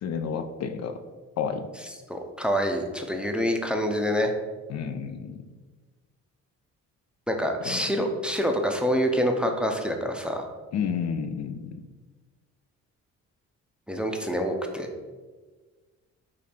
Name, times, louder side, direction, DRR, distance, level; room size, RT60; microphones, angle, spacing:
voice 1, 0.0-1.0 1.4-1.7 4.7-5.4 7.6-8.1 10.7-11.8, left 7 dB, 60° left, 8 dB, 0.4 m, -31 dB
voice 2, 2.1-4.3 7.3-10.5 13.9-14.9, equal, 5° right, 4 dB, 0.5 m, -26 dB
5.1 x 2.5 x 4.2 m, 1.4 s
cardioid pair, 90°, 30 cm